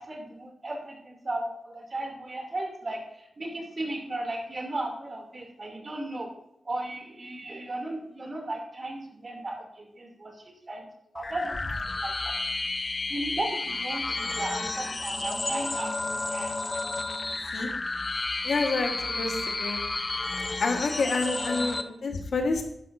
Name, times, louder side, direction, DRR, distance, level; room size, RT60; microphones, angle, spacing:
voice 1, 0.0-6.3 6.6-10.3 10.7-10.8 11.1-12.7 13.1-16.6 21.4-21.7, right 2 dB, 40° right, 2 dB, 2.8 m, -35 dB
sound 1, 11.2-21.8, left 2 dB, 35° left, 0.7 m, -31 dB
voice 2, 18.4-19.8 20.6-22.6, left 3 dB, 75° left, 3 dB, 1.6 m, -28 dB
12.0 x 10.5 x 2.7 m, 0.76 s
wide cardioid pair, 95°, 0 cm